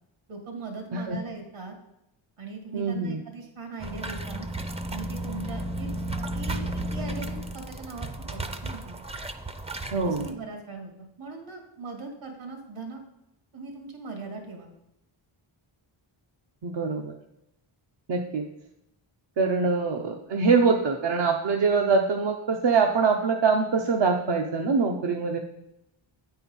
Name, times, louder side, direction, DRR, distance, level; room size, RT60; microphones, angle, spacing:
voice 1, 0.3-1.7 2.4-4.5 4.9-5.9 6.3-9.0 10.0-10.9 11.2-13.0 13.5-14.7, right 4 dB, 75° right, 3 dB, 2.4 m, -40 dB
voice 2, 2.7-3.2 9.9-10.3 16.6-17.2 18.1-18.4 19.4-25.4, right 4 dB, 60° right, 2 dB, 0.8 m, -24 dB
sound 1, 3.8-10.3, right 1 dB, 15° right, 0.5 m, -33 dB
8.8 x 4.5 x 5.4 m, 0.84 s
wide cardioid pair, 95°, 49 cm